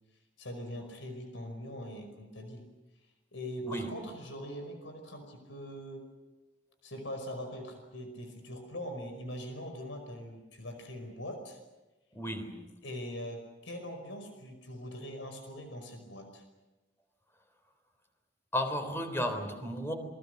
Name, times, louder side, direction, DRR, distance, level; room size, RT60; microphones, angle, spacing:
voice 1, 0.4-2.7 3.3-6.0 6.8-11.6 12.8-16.4, equal, 80° left, 6 dB, 5.3 m, -42 dB
voice 2, 12.1-12.7 18.5-19.9, equal, 15° left, 7 dB, 3.7 m, -34 dB
28.0 x 23.0 x 6.7 m, 1.0 s
head